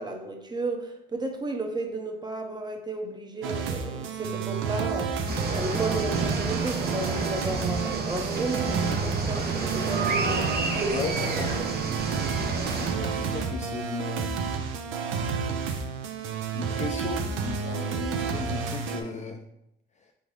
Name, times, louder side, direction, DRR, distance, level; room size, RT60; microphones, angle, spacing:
voice 1, 0.0-5.2 5.5-11.0 11.5-11.6, right 2 dB, 20° right, 4 dB, 0.7 m, -33 dB
sound 1, 3.4-19.0, right 5 dB, 85° right, 0.5 m, -31 dB
sound 2, 5.3-12.9, right 4 dB, 50° right, 0.8 m, -30 dB
voice 2, 10.9-11.5 12.5-14.5 16.2-19.4, left 5 dB, 35° left, 3 dB, 0.4 m, -37 dB
3.9 x 3.5 x 3.1 m, 0.81 s
cardioid pair, 90°, 20 cm